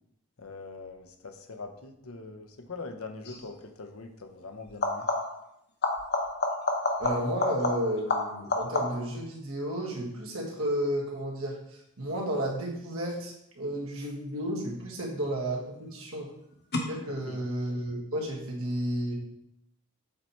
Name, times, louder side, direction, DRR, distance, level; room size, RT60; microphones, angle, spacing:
voice 1, 0.4-5.1 17.3-17.4, left 3 dB, 70° left, 4 dB, 0.8 m, -42 dB
sound 1, 3.2-3.5 4.7-5.5 5.8-9.2 14.6-15.2 16.7-16.8, left 2 dB, 45° left, 1.0 m, -30 dB
voice 2, 7.0-16.3 16.8-19.1, right 1 dB, 70° right, -2 dB, 1.7 m, -32 dB
7.6 x 4.2 x 4.4 m, 0.78 s
head